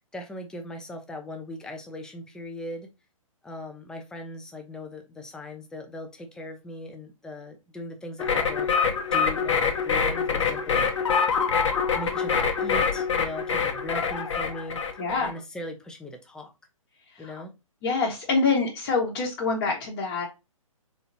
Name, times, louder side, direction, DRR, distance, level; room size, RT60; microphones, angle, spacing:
voice 1, 0.1-2.9 3.4-8.7 9.1-10.9 11.3-11.4 11.9-14.8 15.1-16.5 17.2-17.5, left 1 dB, 5° left, 4 dB, 0.5 m, -39 dB
sound 1, 8.2-15.3, left 6 dB, 60° left, 0.9 m, -25 dB
voice 2, 15.0-15.3 17.1-17.3 17.8-20.2, left 4 dB, 35° left, -4 dB, 1.1 m, -26 dB
4.2 x 2.9 x 2.6 m, 0.25 s
figure-of-eight pair, 125°, 18 cm